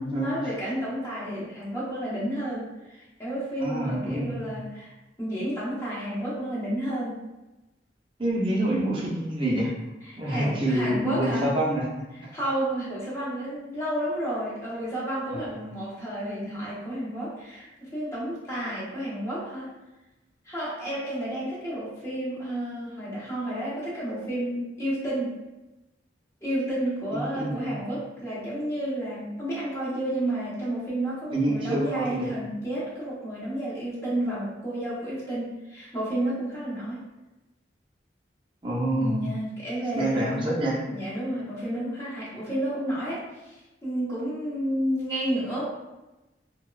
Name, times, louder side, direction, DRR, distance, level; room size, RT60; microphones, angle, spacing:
voice 1, 0.2-4.9 5.2-7.2 10.0-11.5 12.1-19.7 20.4-25.4 26.4-37.0 38.9-40.6 40.9-45.6, right 1 dB, 15° left, -8 dB, 0.8 m, -31 dB
voice 2, 3.6-4.4 8.2-9.7 10.2-11.9 12.2-12.3 15.3-15.5 27.1-27.6 31.3-32.3 38.6-39.1 40.0-40.8, right 1 dB, 30° right, -5 dB, 0.6 m, -26 dB
2.9 x 2.1 x 2.3 m, 1.0 s
head